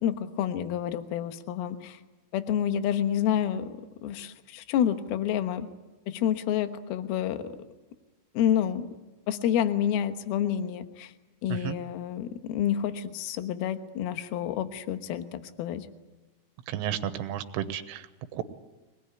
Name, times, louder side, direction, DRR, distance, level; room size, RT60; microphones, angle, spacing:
voice 1, 0.0-2.0 2.3-3.7 4.0-5.7 6.1-7.4 8.3-8.9 9.3-11.1 11.4-15.9, left 10 dB, 70° left, 9 dB, 2.5 m, -28 dB
voice 2, 16.7-18.0 18.3-18.4, right 10 dB, 80° right, 9 dB, 3.6 m, -32 dB
24.0 x 19.5 x 9.9 m, 1.2 s
omnidirectional pair, 5.8 m